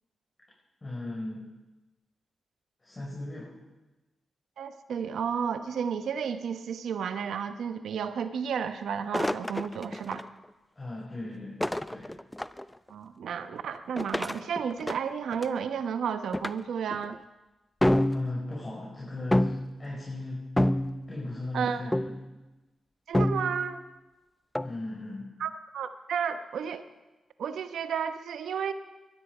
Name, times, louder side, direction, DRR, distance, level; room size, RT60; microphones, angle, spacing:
voice 1, 0.8-1.4 2.8-3.5 10.8-11.6 11.9-12.1 18.1-20.8 21.1-22.1 24.6-25.3, left 2 dB, 30° left, -5 dB, 5.8 m, -37 dB
voice 2, 4.6-10.2 12.9-17.2 21.5-21.8 23.1-23.8 25.4-26.9 27.4-28.7, right 7 dB, 80° right, 10 dB, 1.0 m, -32 dB
sound 1, 9.1-10.2 11.6-12.6 14.0-15.6 16.3-16.5 16.9-17.2 17.8-18.6 19.3-19.8 20.6-21.2 21.9-22.3 23.1-23.7 24.5-24.8, left 1 dB, 10° left, 0.7 m, -28 dB
21.0 x 12.5 x 5.0 m, 1.1 s
supercardioid pair, 50°, 0 cm